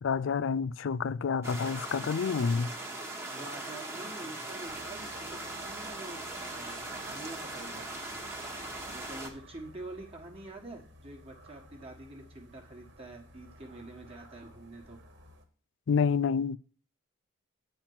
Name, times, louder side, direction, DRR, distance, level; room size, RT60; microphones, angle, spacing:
voice 1, 0.0-2.7 15.9-16.6, left 5 dB, 65° left, 0.4 m, -28 dB
sound 1, 1.4-9.3, right 2 dB, 10° right, 1.3 m, -40 dB
voice 2, 3.3-8.2 8.9-15.0, right 2 dB, 30° right, 1.5 m, -46 dB
sound 2, 4.6-15.5, equal, 55° right, 1.5 m, -55 dB
8.9 x 4.5 x 7.1 m
head